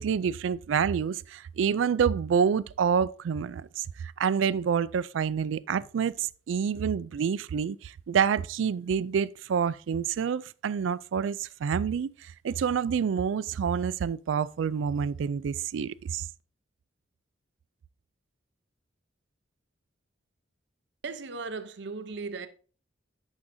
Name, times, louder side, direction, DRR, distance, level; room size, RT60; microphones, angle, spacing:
voice 1, 0.0-12.1 12.4-16.3, right 7 dB, 85° right, 0.3 m, -28 dB
voice 2, 21.0-22.5, right 4 dB, 65° right, 0.7 m, -37 dB
9.5 x 6.3 x 2.7 m
head